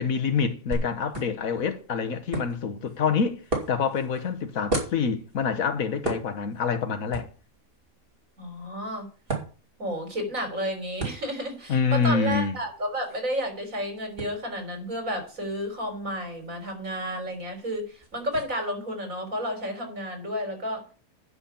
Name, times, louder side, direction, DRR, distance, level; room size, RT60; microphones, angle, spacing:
voice 1, 0.0-3.4 3.7-7.3 11.7-12.6, left 6 dB, 80° left, 1.6 m, -26 dB
sound 1, 0.7-18.4, right 2 dB, 40° right, 2.9 m, -38 dB
voice 2, 8.4-9.1 9.8-20.9, equal, 70° right, 4.2 m, -31 dB
9.9 x 6.2 x 7.1 m
omnidirectional pair, 1.5 m